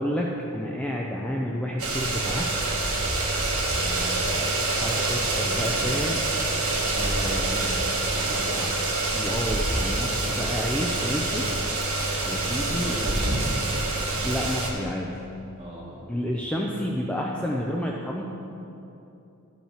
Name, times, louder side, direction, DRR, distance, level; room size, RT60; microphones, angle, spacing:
voice 1, 0.0-2.7 4.8-6.2 7.0-7.5 8.2-8.7 9.1-11.5 12.3-12.9 14.2-15.1 16.1-18.2, equal, 5° left, -2 dB, 0.5 m, -30 dB
sound 1, 1.8-14.7, right 2 dB, 70° right, 1.3 m, -26 dB
voice 2, 3.7-4.6 5.5-6.0 7.0-8.6 12.2-13.5 15.6-16.1, equal, 30° right, -6 dB, 2.0 m, -39 dB
12.5 x 5.5 x 4.4 m, 2.8 s
head